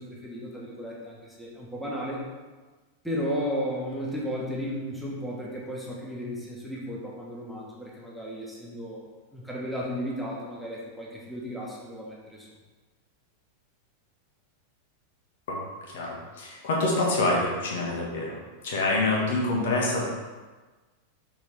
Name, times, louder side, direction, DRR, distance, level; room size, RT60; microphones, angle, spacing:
voice 1, 0.0-2.2 3.0-9.1 9.3-12.5, equal, ahead, -5 dB, 1.6 m, -34 dB
voice 2, 15.9-18.4 18.6-20.0, left 2 dB, 55° left, -3 dB, 1.7 m, -26 dB
6.6 x 5.9 x 3.5 m, 1.3 s
figure-of-eight pair, 90°, 0 cm